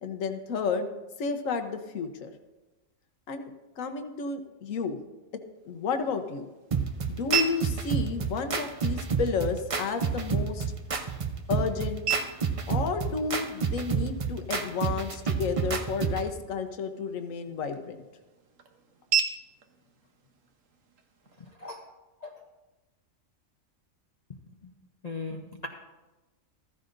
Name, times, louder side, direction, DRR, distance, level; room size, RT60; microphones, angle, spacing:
voice 1, 0.0-0.9 1.2-2.3 3.3-5.0 5.3-6.5 7.1-10.7 11.5-12.0 12.7-18.0, left 5 dB, 75° left, 6 dB, 1.3 m, -32 dB
sound 1, 5.5-21.5, right 8 dB, 70° right, 1.4 m, -38 dB
sound 2, 6.7-16.3, right 6 dB, 40° right, 0.5 m, -30 dB
voice 2, 21.4-21.8 22.2-22.3 25.0-25.7, left 3 dB, 35° left, 1 dB, 0.8 m, -38 dB
15.0 x 14.5 x 2.6 m, 1.1 s
omnidirectional pair, 1.4 m